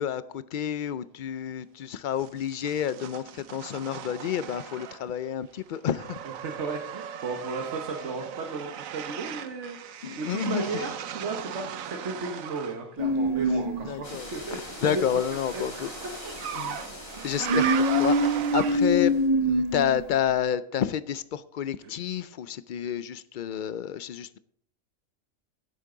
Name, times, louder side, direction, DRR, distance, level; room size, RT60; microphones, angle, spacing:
voice 1, 0.0-6.2 10.0-10.8 13.8-15.9 16.6-16.8 17.2-17.7 18.0-19.1 19.4-24.4, left 9 dB, 65° left, 15 dB, 0.4 m, -30 dB
sound 1, 2.2-5.2 5.5-12.8 14.4-19.1, right 9 dB, 85° right, 1.2 m, -37 dB
voice 2, 6.2-15.2 15.5-16.2 17.4-17.6 21.8-21.9, right 4 dB, 60° right, 3 dB, 1.5 m, -35 dB
sound 2, 13.0-14.1 17.2-20.3, equal, 30° right, 1.2 m, -24 dB
sound 3, 14.0-19.3, left 1 dB, 45° left, 3.9 m, -43 dB
15.5 x 8.2 x 3.9 m, 0.65 s
omnidirectional pair, 1.4 m